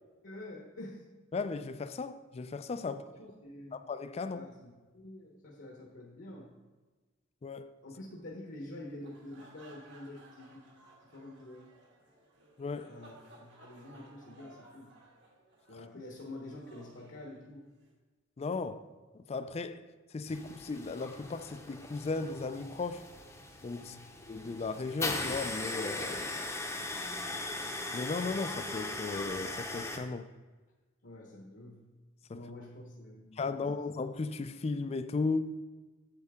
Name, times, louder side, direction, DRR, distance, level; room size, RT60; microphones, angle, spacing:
voice 1, 0.2-1.0 2.8-3.8 4.3-6.5 7.8-10.7 11.1-11.7 12.9-14.9 15.7-17.6 18.7-18.8 23.8-24.1 31.0-31.8 32.3-33.7, left 1 dB, 60° left, 1.0 m, -47 dB
voice 2, 1.3-3.0 3.7-4.5 7.4-7.7 12.6-12.9 18.4-18.8 19.1-19.8 20.1-23.1 23.6-24.0 24.3-26.4 27.9-30.3 32.3-32.4 33.4-35.6, left 3 dB, 30° left, 0.3 m, -36 dB
sound 1, 8.9-17.9, right 2 dB, 60° right, 1.8 m, -58 dB
sound 2, 20.3-30.0, left 2 dB, 15° left, 0.7 m, -39 dB
8.2 x 7.6 x 3.6 m
head